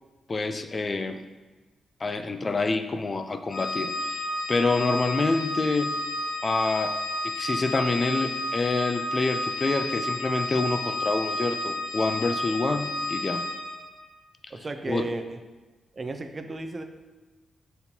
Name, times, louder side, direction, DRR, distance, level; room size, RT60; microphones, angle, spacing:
voice 1, 0.3-1.2 2.0-4.2 4.5-5.9 6.4-7.0 7.2-13.4 14.9-15.0, left 3 dB, 40° left, 8 dB, 0.3 m, -27 dB
Organ, 3.5-13.9, left 1 dB, 75° left, 0.7 m, -31 dB
voice 2, 14.5-15.4 15.9-16.8, right 2 dB, 40° right, 6 dB, 0.4 m, -34 dB
4.4 x 3.7 x 2.8 m, 1.3 s
hypercardioid pair, 45°, 0 cm